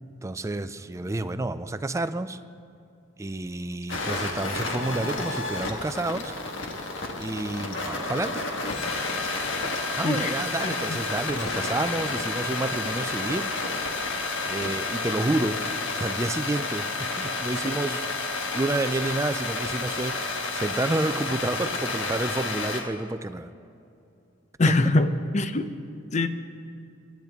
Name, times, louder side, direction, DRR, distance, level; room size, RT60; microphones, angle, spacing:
voice 1, 0.2-2.4 3.2-6.3 7.2-8.4 9.9-13.5 14.4-15.6 16.0-18.1 18.5-20.2 20.5-23.5 24.7-24.8, right 2 dB, 15° right, 12 dB, 0.4 m, -29 dB
sound 1, 3.9-22.8, left 3 dB, 70° left, 1.5 m, -30 dB
voice 2, 10.0-10.4 10.6-11.0 24.6-25.7 26.1-26.3, left 2 dB, 35° left, 10 dB, 0.6 m, -23 dB
23.5 x 10.5 x 3.6 m, 2.6 s
head